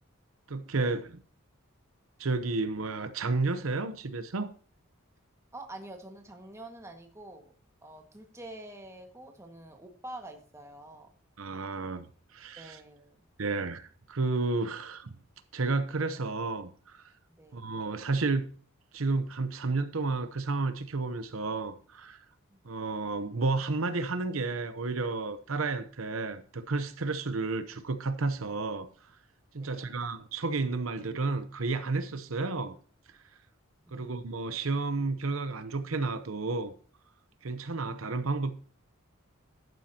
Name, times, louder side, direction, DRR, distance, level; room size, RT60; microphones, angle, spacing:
voice 1, 0.5-1.0 2.2-4.5 11.4-12.1 12.3-12.8 13.4-15.1 15.5-17.0 17.5-18.5 18.9-22.2 22.6-28.9 29.5-32.8 33.9-36.7 37.4-38.5, right 3 dB, 85° right, 0.8 m, -31 dB
voice 2, 5.5-7.5 7.8-11.1 12.6-13.2 17.4-17.8 22.5-22.6 29.6-30.0 33.9-34.2, right 1 dB, 15° right, 1.8 m, -47 dB
11.0 x 9.2 x 2.9 m
head